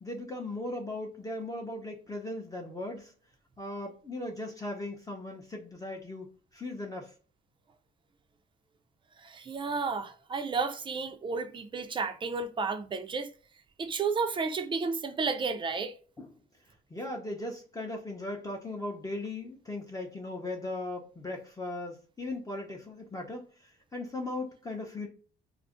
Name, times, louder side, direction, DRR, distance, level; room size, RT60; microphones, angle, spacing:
voice 1, 0.0-3.1 3.6-7.1 16.2-16.3 16.9-25.1, left 2 dB, 15° left, 0.6 m, -38 dB
voice 2, 9.2-13.3 13.8-16.0, right 4 dB, 25° right, 0.4 m, -32 dB
2.4 x 2.0 x 3.6 m
cardioid pair, 90°, 20 cm